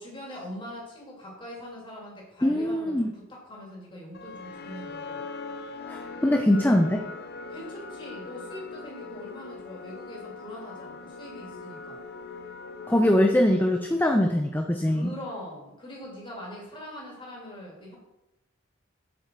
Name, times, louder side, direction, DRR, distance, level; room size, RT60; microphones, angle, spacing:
voice 1, 0.0-5.2 7.5-12.0 14.9-18.0, left 1 dB, 25° left, -3 dB, 2.8 m, -42 dB
voice 2, 2.4-3.1 5.9-7.0 12.9-15.1, left 1 dB, 10° left, 4 dB, 0.5 m, -22 dB
sound 1, 4.1-14.3, left 4 dB, 55° left, 0.7 m, -41 dB
8.0 x 6.3 x 4.5 m, 0.92 s
head